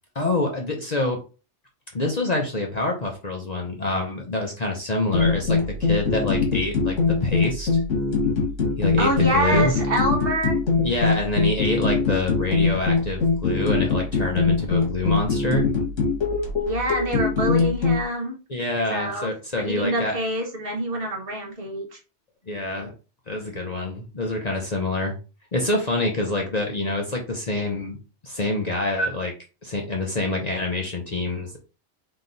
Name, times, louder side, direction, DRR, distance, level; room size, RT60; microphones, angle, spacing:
voice 1, 0.1-1.2 1.9-7.8 8.8-9.7 10.8-15.7 18.5-20.1 22.5-22.9 23.3-25.2 25.5-28.0 28.2-29.3 29.6-31.6, left 2 dB, 40° left, 1 dB, 0.7 m, -26 dB
sound 1, 5.1-18.0, left 4 dB, 85° left, 1.7 m, -22 dB
voice 2, 9.0-10.6 16.6-18.4 18.9-19.3 19.6-21.9, right 1 dB, 50° right, 2 dB, 1.3 m, -26 dB
3.9 x 2.8 x 3.9 m, 0.32 s
omnidirectional pair, 1.2 m